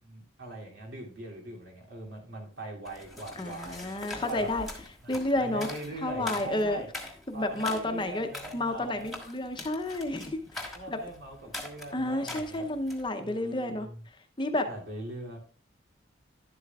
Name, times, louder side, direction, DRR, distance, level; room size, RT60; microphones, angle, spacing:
voice 1, 0.0-4.5 5.0-5.1 5.4-6.9 7.3-9.2 10.7-12.7 13.2-14.0 14.7-15.4, right 1 dB, 80° right, -2 dB, 2.7 m, -41 dB
sound 1, 2.8-13.1, left 1 dB, ahead, 1.5 m, -43 dB
voice 2, 3.4-4.7 5.1-5.7 6.0-6.8 7.3-11.0 11.9-13.9 14.4-14.7, left 1 dB, 25° left, 6 dB, 0.7 m, -31 dB
11.0 x 8.1 x 2.3 m, 0.42 s
head